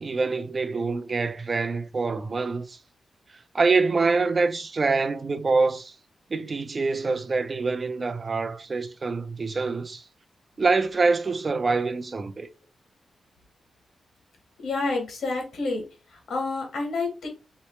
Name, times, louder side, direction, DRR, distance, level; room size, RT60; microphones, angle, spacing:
voice 1, 0.0-2.8 3.5-5.9 6.3-10.0 10.6-12.5, right 4 dB, 35° right, 0.4 m, -25 dB
voice 2, 14.6-15.8 16.3-17.3, left 3 dB, 75° left, 1.5 m, -28 dB
3.1 x 3.0 x 3.0 m
wide cardioid pair, 130°, 0 cm